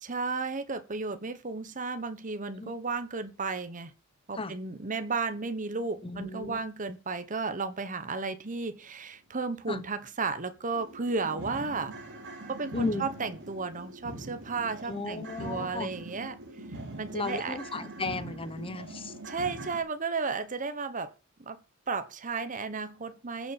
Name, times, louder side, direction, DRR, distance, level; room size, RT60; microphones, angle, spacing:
voice 1, 0.0-3.9 4.3-11.9 12.5-16.4 17.0-17.6 19.3-21.1 21.4-21.6 21.9-23.5, right 4 dB, 40° right, 1.1 m, -33 dB
voice 2, 6.0-6.6 9.7-9.8 12.7-13.1 14.9-15.9 17.1-19.2, left 2 dB, 25° left, 1.0 m, -34 dB
sound 1, 9.8-9.9 10.3-10.4 10.7-19.8, right 2 dB, 55° right, 3.2 m, -43 dB
15.5 x 7.2 x 7.1 m
head